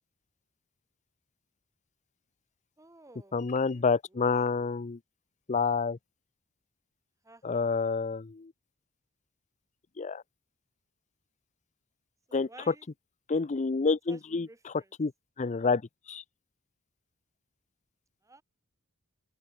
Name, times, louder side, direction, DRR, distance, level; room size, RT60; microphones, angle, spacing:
voice 1, 2.8-3.8 7.2-7.9 12.3-12.9 14.1-14.2 14.5-14.9 18.2-18.4, right 2 dB, 15° right, 1.5 m, -54 dB
voice 2, 3.3-5.0 5.5-6.0 7.4-8.5 10.0-10.2 12.3-12.7 13.3-14.7 15.0-15.1 15.4-15.8 16.1-16.2, left 4 dB, 35° left, 0.5 m, -28 dB
head